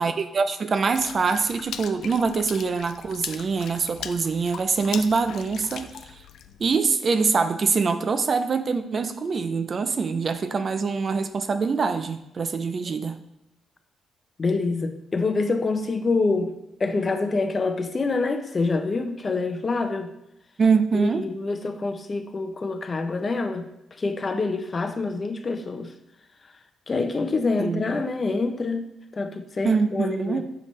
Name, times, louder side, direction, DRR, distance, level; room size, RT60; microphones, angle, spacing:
voice 1, 0.0-6.2 6.6-13.2 20.6-21.3 27.6-28.1 29.6-30.4, right 5 dB, 40° right, 10 dB, 0.4 m, -24 dB
Water / Splash splatter, 0.9-6.8, left 8 dB, 75° left, 0.3 m, -39 dB
voice 2, 14.4-16.5 16.8-20.1 20.9-25.9 26.9-30.4, left 3 dB, 35° left, 7 dB, 0.6 m, -26 dB
6.6 x 5.2 x 3.2 m, 0.88 s
cardioid pair, 115°, 0 cm